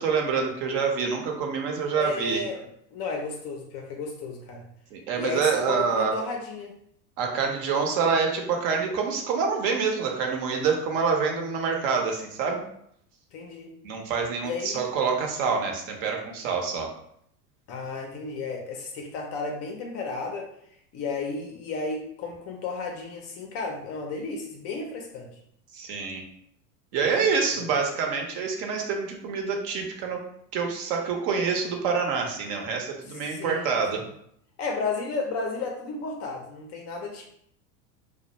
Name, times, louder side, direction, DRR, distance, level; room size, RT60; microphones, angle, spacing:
voice 1, 0.0-2.4 4.9-6.2 7.2-12.6 13.8-16.9 25.7-26.2 26.9-30.2 30.5-34.0, right 5 dB, 55° right, 2 dB, 0.8 m, -26 dB
voice 2, 1.9-2.6 2.9-4.6 5.1-6.7 13.3-13.8 14.4-14.8 17.7-20.5 20.9-25.3 27.1-27.3 33.1-34.1 34.6-37.2, left 4 dB, 35° left, 2 dB, 0.4 m, -33 dB
2.4 x 2.1 x 2.9 m, 0.71 s
hypercardioid pair, 95°, 47 cm